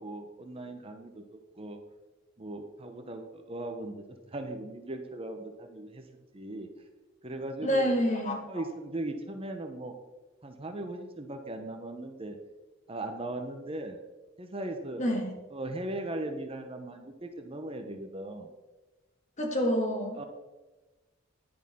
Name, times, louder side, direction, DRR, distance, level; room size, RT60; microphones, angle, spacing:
voice 1, 0.0-1.8 2.4-4.0 4.3-6.0 6.3-6.7 7.2-7.9 8.5-9.9 10.4-12.4 12.9-14.0 14.4-15.0 15.5-18.5 20.1-20.2, right 1 dB, 25° right, 5 dB, 0.9 m, -38 dB
voice 2, 7.6-8.4 15.0-15.3 19.4-20.2, equal, 35° left, 1 dB, 2.1 m, -27 dB
10.5 x 9.9 x 3.7 m, 1.2 s
head